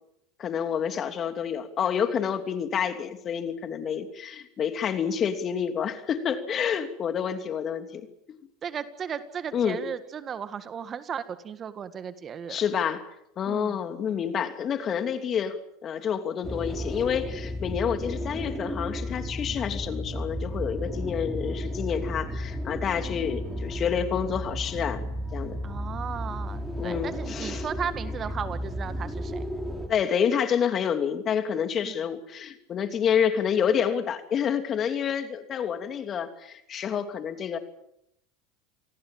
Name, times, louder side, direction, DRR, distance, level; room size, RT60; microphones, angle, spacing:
voice 1, 0.4-8.1 9.5-9.8 12.5-13.0 13.4-25.6 26.8-27.7 29.9-37.6, left 8 dB, 40° left, 8 dB, 2.9 m, -28 dB
voice 2, 8.6-12.6 13.4-13.8 25.6-29.5 31.8-31.9, right 7 dB, 35° right, 12 dB, 1.8 m, -35 dB
sound 1, 16.4-29.9, equal, 5° right, 5.6 m, -33 dB
28.5 x 19.5 x 7.5 m, 0.78 s
hypercardioid pair, 90°, 0 cm